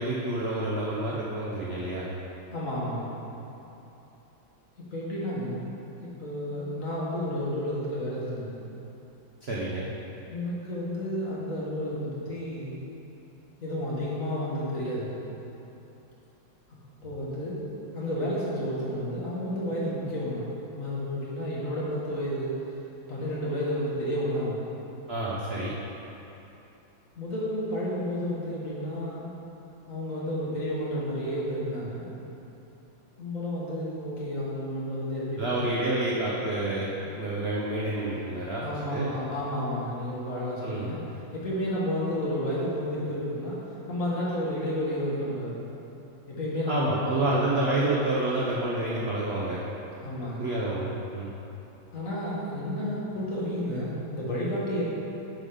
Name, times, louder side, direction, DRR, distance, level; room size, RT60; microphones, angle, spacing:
voice 1, 0.0-2.1 9.4-9.9 25.1-25.7 35.4-36.9 37.2-38.6 38.9-39.1 40.6-40.9 46.7-49.6 50.4-51.3, right 2 dB, 60° right, -5 dB, 0.6 m, -28 dB
voice 2, 2.5-3.2 4.8-5.6 6.0-8.6 10.3-12.8 13.6-15.2 17.0-17.6 17.9-22.6 23.1-24.7 27.2-29.3 29.9-32.1 33.2-35.8 37.0-37.1 38.6-41.0 41.3-43.6 43.9-45.6 46.3-47.7 50.0-50.5 51.9-54.8, equal, 45° left, -7 dB, 1.8 m, -31 dB
10.5 x 3.8 x 5.0 m, 3.0 s
omnidirectional pair, 2.2 m